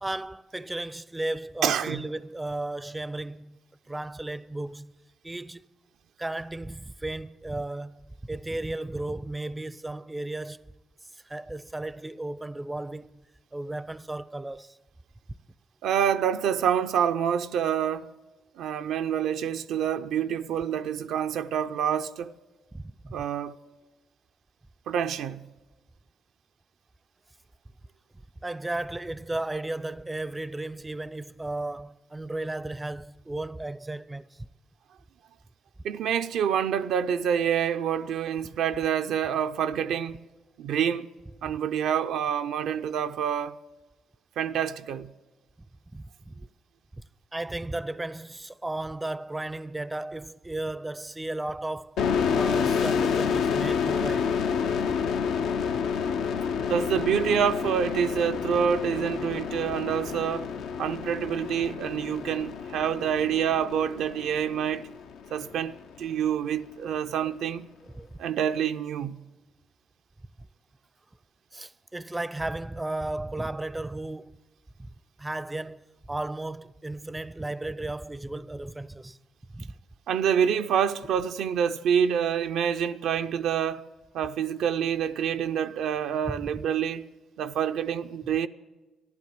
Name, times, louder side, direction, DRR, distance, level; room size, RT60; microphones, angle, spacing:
voice 1, 0.0-3.6 3.9-4.9 5.2-5.7 6.2-10.7 11.1-13.1 13.5-14.8 22.7-23.2 28.4-34.5 45.9-46.3 47.0-47.1 47.3-52.0 52.3-54.4 67.9-68.1 71.5-74.3 75.2-79.2 79.5-79.7 86.3-86.6, right 2 dB, 15° right, 0.5 m, -34 dB
voice 2, 1.6-2.0 15.8-18.1 18.5-22.3 23.1-23.5 24.9-25.4 35.8-40.2 40.6-41.1 41.4-43.6 44.4-45.1 56.7-60.5 60.8-64.9 65.3-67.7 68.2-69.2 80.1-83.9 84.1-87.1 87.4-88.5, right 8 dB, 75° right, 0.4 m, -27 dB
sound 1, 52.0-65.4, left 6 dB, 75° left, 0.6 m, -29 dB
13.0 x 11.5 x 7.5 m
supercardioid pair, 55°, 0 cm